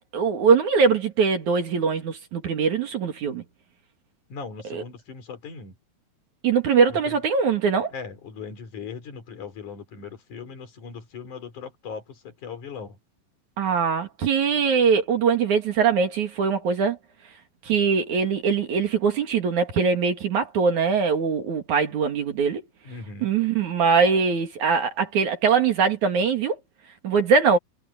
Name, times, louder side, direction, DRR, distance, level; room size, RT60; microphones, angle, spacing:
voice 1, 0.1-3.4 4.7-4.8 6.4-7.9 13.6-17.0 17.6-22.6 23.2-26.6 27.0-27.6, right 5 dB, 50° right, 3.2 m, -22 dB
voice 2, 4.3-5.7 6.9-7.1 7.9-13.0 22.8-23.3, left 5 dB, 50° left, 5.0 m, -39 dB
omnidirectional pair, 4.7 m